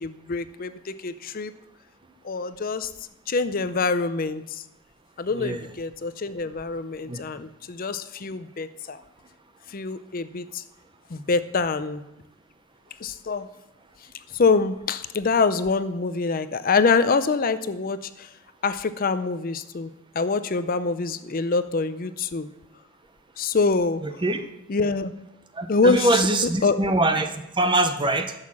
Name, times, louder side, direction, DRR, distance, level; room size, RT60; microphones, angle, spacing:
voice 1, 0.0-1.5 2.2-2.9 3.3-4.6 5.2-9.0 9.7-10.6 11.1-12.0 13.0-13.5 14.3-18.3 18.6-22.5 23.4-24.2 24.7-25.1 25.7-26.2 26.6-26.8, left 4 dB, 40° left, 12 dB, 0.5 m, -25 dB
voice 2, 24.0-24.4 25.5-28.3, right 2 dB, 20° right, 8 dB, 0.7 m, -23 dB
12.0 x 6.6 x 7.3 m, 0.90 s
head